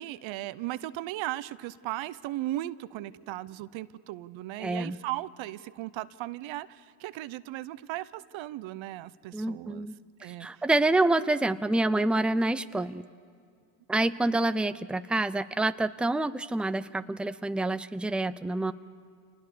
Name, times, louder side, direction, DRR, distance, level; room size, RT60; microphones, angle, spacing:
voice 1, 0.0-9.9 10.2-10.5, right 15 dB, 80° right, 16 dB, 0.8 m, -37 dB
voice 2, 4.6-5.0 9.3-10.0 10.2-13.0 13.9-18.7, right 2 dB, ahead, 13 dB, 0.6 m, -27 dB
27.0 x 20.0 x 6.8 m, 2.2 s
supercardioid pair, 75°, 46 cm